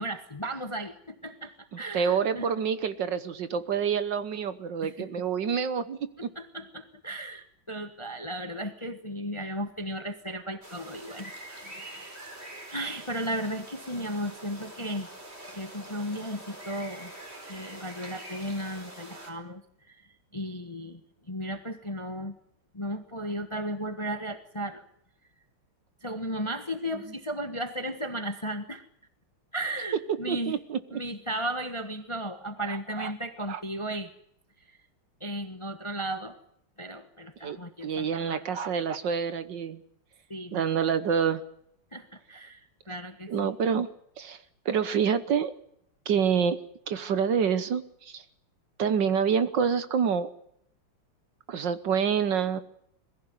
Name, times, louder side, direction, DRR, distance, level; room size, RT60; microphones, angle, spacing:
voice 1, 0.0-2.5 4.8-5.1 6.3-11.3 11.6-12.2 12.7-15.1 15.5-17.1 17.4-20.0 20.3-21.0 21.3-22.3 22.7-24.8 26.0-28.8 29.5-30.6 30.9-34.1 34.7-34.8 35.2-36.3 36.8-38.4 40.3-40.9 41.9-43.5, right 1 dB, 20° left, 9 dB, 1.0 m, -35 dB
voice 2, 1.9-6.3 26.9-27.0 30.1-31.0 32.7-33.1 33.5-33.6 37.4-37.6 37.8-39.8 40.5-41.4 43.3-43.9 44.2-45.5 46.0-46.6 46.9-48.2 48.8-50.3 51.5-52.6, right 7 dB, 60° right, 13 dB, 1.6 m, -27 dB
sound 1, 10.6-19.3, right 1 dB, 30° right, 4.4 m, -45 dB
21.5 x 15.5 x 9.7 m, 0.71 s
omnidirectional pair, 2.4 m